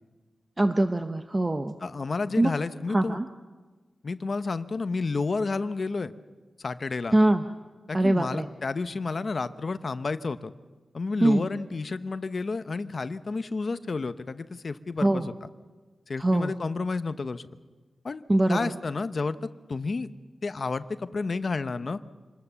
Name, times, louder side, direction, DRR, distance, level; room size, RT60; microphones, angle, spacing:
voice 1, 0.6-1.8 2.4-2.5 2.9-3.3 7.1-7.4 7.9-8.5 11.2-11.5 15.0-15.3 16.2-16.5 18.3-18.7, right 1 dB, 20° right, 7 dB, 0.8 m, -23 dB
voice 2, 1.8-3.2 4.0-6.1 6.6-7.2 7.9-10.5 10.9-15.5 16.1-17.5 18.0-18.2 18.5-19.4 19.7-20.1 20.4-22.0, left 4 dB, 40° left, 12 dB, 0.8 m, -30 dB
26.5 x 20.5 x 6.9 m, 1.3 s
wide cardioid pair, 160°, 0 cm